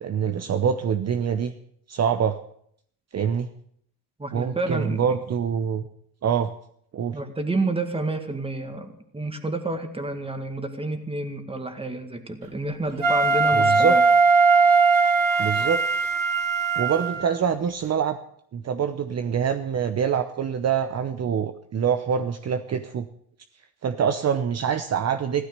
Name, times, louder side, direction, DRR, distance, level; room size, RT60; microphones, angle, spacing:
voice 1, 0.0-1.5 1.9-2.4 3.1-3.5 4.3-5.8 6.2-6.5 6.9-7.2 13.5-14.0 15.4-15.8 16.7-18.2 18.5-23.1 23.8-25.5, right 7 dB, 45° right, 10 dB, 0.8 m, -25 dB
voice 2, 4.2-5.0 7.1-14.0, right 2 dB, 15° right, 7 dB, 2.0 m, -29 dB
Wind instrument woodwind instrument, 13.0-17.3, right 4 dB, 60° right, 2.3 m, -19 dB
15.5 x 13.0 x 6.7 m, 0.66 s
cardioid pair, 120°, 38 cm